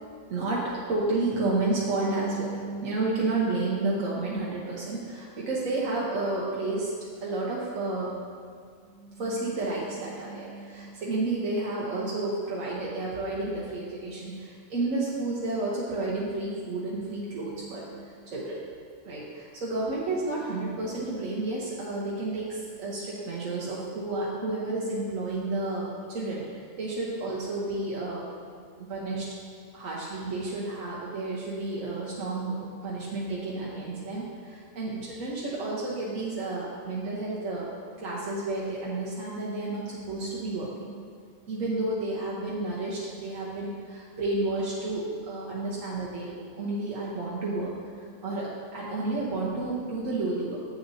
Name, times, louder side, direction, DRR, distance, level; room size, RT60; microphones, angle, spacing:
voice 1, 0.3-6.9 7.2-8.1 8.9-18.6 19.0-28.2 28.8-29.3 29.7-37.7 38.0-41.0 41.5-46.3 46.6-50.6, right 2 dB, 75° right, -6 dB, 1.4 m, -31 dB
10.0 x 7.5 x 2.7 m, 2.1 s
omnidirectional pair, 1.4 m